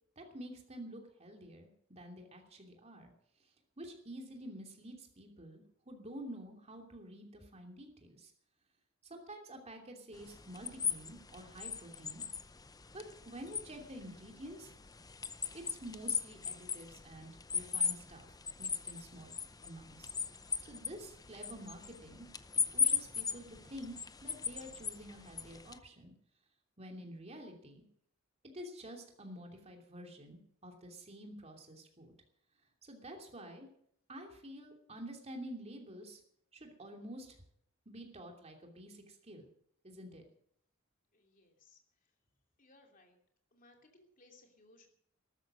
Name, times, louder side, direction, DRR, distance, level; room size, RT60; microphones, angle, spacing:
voice 1, 0.2-3.1 3.8-8.3 9.0-12.2 12.9-14.7 15.5-22.3 22.7-23.9 24.2-26.1 26.8-27.8 28.5-32.1 32.8-33.7 34.1-36.2 36.5-37.4 37.8-39.5 39.8-40.2, right 1 dB, 30° right, 3 dB, 2.9 m, -49 dB
sound 1, 10.1-25.8, left 6 dB, 20° left, 0.6 m, -39 dB
voice 2, 41.1-41.8 42.6-43.2 43.5-44.9, left 2 dB, 45° left, 3 dB, 2.9 m, -63 dB
14.0 x 13.0 x 6.3 m, 0.69 s
head